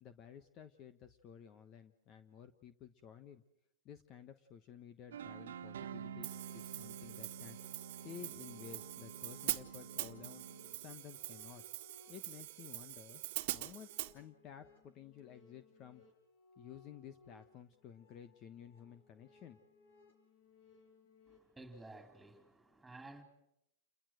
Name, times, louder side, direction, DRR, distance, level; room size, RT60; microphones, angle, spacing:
voice 1, 0.0-3.4 3.8-7.6 8.0-10.4 10.8-11.6 12.1-13.2 13.5-13.9 14.1-16.0 16.6-19.6, left 9 dB, 35° left, 1.2 m, -54 dB
sound 1, 5.1-11.0, right 7 dB, 90° right, 1.5 m, -49 dB
Hi-hat, 6.2-14.1, right 18 dB, 60° right, 1.5 m, -44 dB
sound 2, 7.0-21.4, left 4 dB, 70° left, 5.8 m, -66 dB
voice 2, 21.3-23.2, right 2 dB, 5° right, 4.1 m, -54 dB
29.0 x 21.5 x 6.5 m
hypercardioid pair, 135°, 0 cm